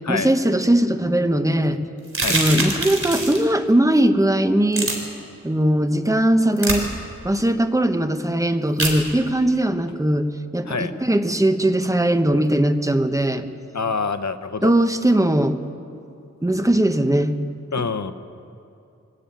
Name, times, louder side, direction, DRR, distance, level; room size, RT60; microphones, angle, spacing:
voice 1, 0.1-1.8 2.3-4.9 5.4-6.9 7.2-13.4 14.6-15.6 16.4-17.3, right 1 dB, 10° right, 8 dB, 1.1 m, -19 dB
sound 1, 2.1-3.4 4.7-4.9 6.6-6.8 8.8-9.0, right 2 dB, 50° right, 3.8 m, -23 dB
voice 2, 13.7-14.7 17.7-18.1, left 5 dB, 75° left, 10 dB, 1.0 m, -26 dB
23.0 x 13.0 x 9.1 m, 2.6 s
wide cardioid pair, 75°, 29 cm